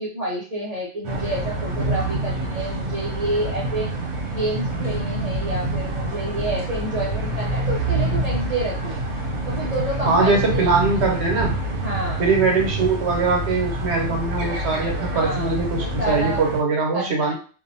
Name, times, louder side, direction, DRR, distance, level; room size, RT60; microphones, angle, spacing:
voice 1, 0.0-3.9 4.3-9.0 9.4-10.7 11.8-12.3 14.1-14.7 15.1-15.5 15.8-16.4 16.9-17.3, right 1 dB, 45° right, -5 dB, 0.5 m, -29 dB
sound 1, 1.0-16.6, right 1 dB, 90° right, 1.0 m, -27 dB
voice 2, 10.1-11.5 12.2-17.3, right 4 dB, 70° right, 0 dB, 1.0 m, -21 dB
2.6 x 2.0 x 2.6 m, 0.38 s
omnidirectional pair, 1.2 m